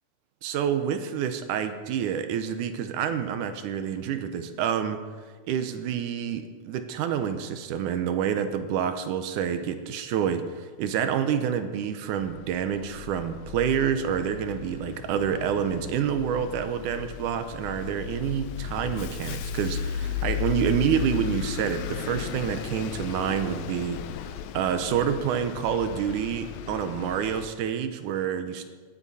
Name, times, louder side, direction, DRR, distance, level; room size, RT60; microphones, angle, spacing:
voice 1, 0.4-5.0 5.5-24.0 24.5-28.7, right 8 dB, 80° right, 9 dB, 2.2 m, -28 dB
Bus, 12.2-27.5, left 9 dB, 80° left, 1.6 m, -35 dB
20.5 x 8.4 x 4.1 m, 1.5 s
omnidirectional pair, 3.7 m